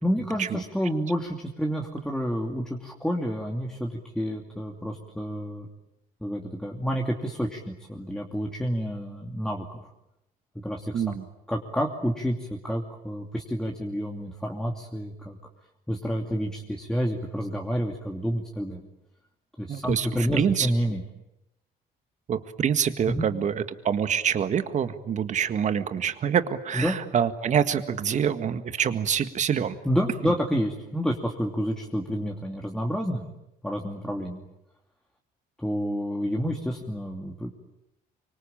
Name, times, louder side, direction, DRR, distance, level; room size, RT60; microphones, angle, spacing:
voice 1, 0.0-5.7 6.2-9.8 10.6-11.1 11.5-15.4 15.9-18.9 19.6-21.0 23.1-23.3 26.7-27.0 29.8-33.3 33.6-34.4 35.6-37.5, equal, 5° left, 0 dB, 2.7 m, -29 dB
voice 2, 10.9-11.3 19.7-20.7 22.3-29.8 30.2-30.3, right 8 dB, 45° right, 10 dB, 1.8 m, -26 dB
25.5 x 24.5 x 9.0 m, 0.89 s
cardioid pair, 110°, 17 cm